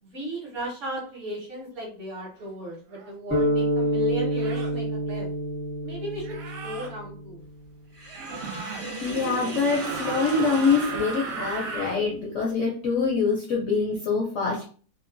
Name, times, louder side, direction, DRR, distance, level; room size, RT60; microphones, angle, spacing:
voice 1, 0.0-5.3 5.8-6.4 6.6-7.4 9.8-9.9, right 1 dB, 50° right, -2 dB, 1.1 m, -35 dB
sound 1, 2.9-3.1 4.3-4.8 6.2-6.9 8.1-8.8 9.6-12.0, right 4 dB, 70° right, 1.1 m, -36 dB
sound 2, 3.3-7.6, equal, 15° left, 0.3 m, -28 dB
Sink (filling or washing), 7.9-11.9, right 3 dB, 90° right, 0.4 m, -35 dB
voice 2, 9.0-14.7, left 4 dB, 70° left, -2 dB, 0.7 m, -25 dB
2.9 x 2.2 x 2.5 m, 0.41 s
omnidirectional pair, 1.9 m